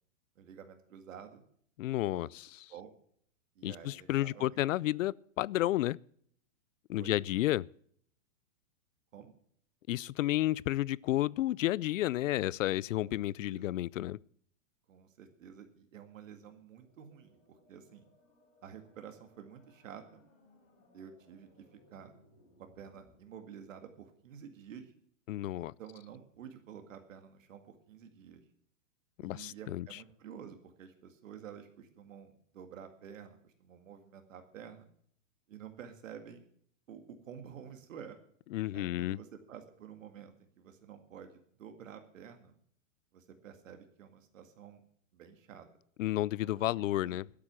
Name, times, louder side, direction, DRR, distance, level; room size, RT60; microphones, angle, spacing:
voice 1, 0.4-1.4 2.1-2.3 2.7-2.9 3.6-4.6 7.0-7.2 9.1-9.3 13.0-13.1 13.5-13.7 14.9-18.1 18.6-20.2 20.9-22.1 22.6-24.9 25.6-28.4 29.2-34.9 35.5-36.5 36.9-38.2 38.7-42.6 43.1-44.8 45.1-45.7 46.4-47.2, right 8 dB, 75° right, 2.1 m, -50 dB
voice 2, 1.8-2.5 3.6-6.0 6.9-7.7 9.9-14.2 25.3-25.7 29.2-29.9 38.5-39.2 46.0-47.2, left 15 dB, 75° left, 0.5 m, -31 dB
sound 1, 16.7-23.2, left 2 dB, 20° left, 4.4 m, -66 dB
12.5 x 8.6 x 7.4 m
supercardioid pair, 170°, 39 cm